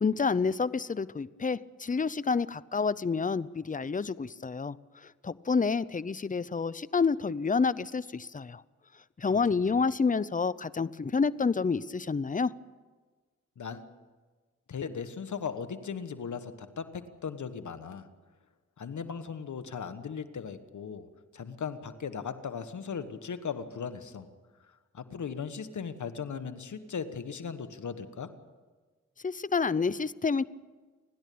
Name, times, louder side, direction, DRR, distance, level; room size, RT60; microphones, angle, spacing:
voice 1, 0.0-4.8 5.2-8.6 9.2-12.5 29.2-30.5, left 5 dB, 25° left, 18 dB, 0.6 m, -28 dB
voice 2, 9.3-9.8 13.6-13.9 14.7-18.1 18.8-21.1 21.3-24.3 24.9-28.3, left 6 dB, 70° left, 10 dB, 1.5 m, -38 dB
30.0 x 11.0 x 8.6 m, 1.4 s
cardioid pair, 60°, 30 cm